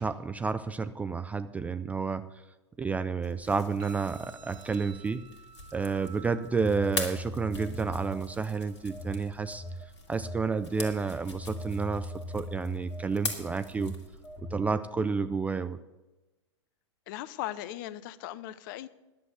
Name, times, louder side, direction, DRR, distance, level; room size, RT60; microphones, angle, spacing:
voice 1, 0.0-2.2 2.8-5.3 5.7-9.6 10.1-14.0 14.5-15.8, right 4 dB, 10° right, 11 dB, 0.3 m, -30 dB
sound 1, 3.2-14.4, left 2 dB, 70° left, 2.2 m, -43 dB
sound 2, 3.8-11.8, right 5 dB, 50° right, 2.8 m, -55 dB
Telephone, 6.6-8.5 8.9-14.7, equal, 10° left, 0.8 m, -41 dB
voice 2, 17.1-18.9, left 14 dB, 45° left, 16 dB, 0.6 m, -38 dB
10.5 x 7.6 x 7.7 m, 1.1 s
figure-of-eight pair, 95°, 15 cm